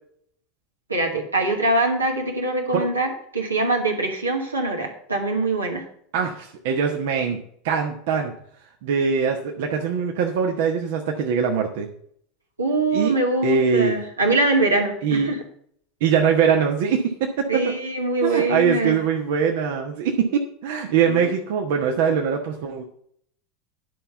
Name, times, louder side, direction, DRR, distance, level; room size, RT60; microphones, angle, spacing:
voice 1, 0.9-5.8 12.6-15.4 17.5-19.0 21.0-21.3, right 2 dB, 90° right, 1 dB, 2.2 m, -23 dB
voice 2, 6.1-7.4 7.6-8.3 8.8-11.9 12.9-13.1 13.4-14.0 15.0-15.3 16.0-17.7 18.2-22.8, right 6 dB, 60° right, 2 dB, 1.2 m, -22 dB
11.0 x 5.7 x 6.8 m, 0.65 s
figure-of-eight pair, 80°, 0 cm